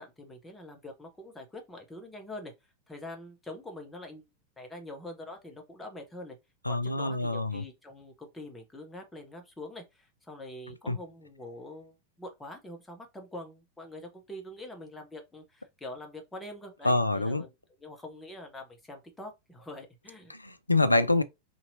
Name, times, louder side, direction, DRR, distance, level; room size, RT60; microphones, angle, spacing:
voice 1, 0.0-2.5 2.9-4.2 4.6-6.4 6.7-17.5 17.8-20.4, left 1 dB, 10° left, 0.8 m, -44 dB
voice 2, 6.7-7.6 10.9-11.0 16.8-17.4 20.3-21.2, left 2 dB, 85° left, 0.3 m, -26 dB
2.8 x 2.7 x 2.7 m
figure-of-eight pair, 90°, 0 cm